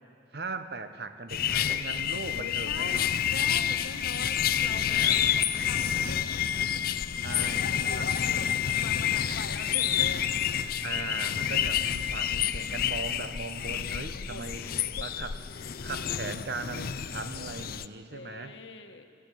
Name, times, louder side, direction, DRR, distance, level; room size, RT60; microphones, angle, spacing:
voice 1, 0.3-3.2 4.7-5.2 7.2-8.4 10.8-14.7 15.0-15.4 15.8-18.6, right 3 dB, 60° right, 9 dB, 1.0 m, -39 dB
sound 1, 1.3-17.9, left 9 dB, 55° left, 0.5 m, -29 dB
voice 2, 2.3-6.3 7.4-8.5 8.7-10.3 14.1-14.8 15.6-16.6 18.0-19.1, left 3 dB, 85° left, 7 dB, 1.3 m, -44 dB
21.0 x 14.5 x 9.1 m, 2.4 s
head